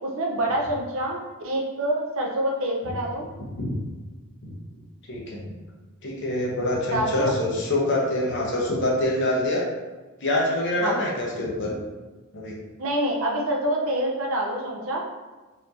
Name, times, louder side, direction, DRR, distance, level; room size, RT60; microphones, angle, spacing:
voice 1, 0.0-3.3 6.9-7.3 10.8-11.0 12.8-15.0, right 1 dB, 65° right, 0 dB, 0.6 m, -26 dB
voice 2, 3.4-3.8 4.4-4.5 5.1-5.5 6.0-9.6 10.2-11.7 12.3-12.6, left 1 dB, 55° left, -3 dB, 0.8 m, -25 dB
4.2 x 2.6 x 2.8 m, 1.2 s
head